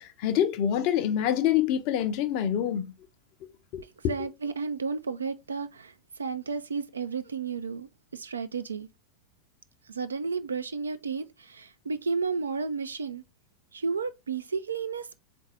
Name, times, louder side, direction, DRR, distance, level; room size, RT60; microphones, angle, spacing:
voice 1, 0.0-2.9 3.7-4.1, left 10 dB, 45° left, 0.6 m, -26 dB
voice 2, 4.1-8.9 9.9-13.2 13.7-15.2, right 5 dB, 75° right, 0.4 m, -32 dB
3.9 x 2.5 x 4.7 m
figure-of-eight pair, 90°, 0 cm